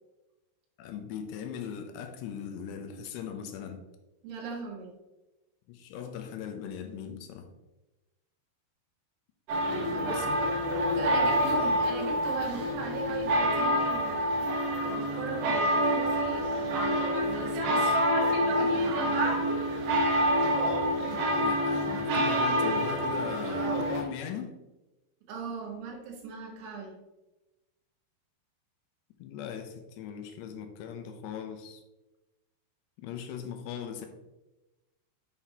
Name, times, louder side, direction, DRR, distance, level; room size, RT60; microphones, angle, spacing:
voice 1, 0.8-3.9 5.7-7.5 10.1-10.4 10.8-11.6 21.3-24.6 29.2-31.8 33.0-34.1, left 8 dB, 80° left, 6 dB, 2.7 m, -39 dB
voice 2, 4.2-4.9 9.7-10.6 11.0-14.5 14.8-18.0 18.4-19.7 25.3-27.0, right 4 dB, 80° right, 0 dB, 3.8 m, -39 dB
sound 1, 9.5-24.0, equal, 60° right, 2.3 m, -27 dB
9.4 x 6.4 x 2.9 m, 1.0 s
omnidirectional pair, 5.4 m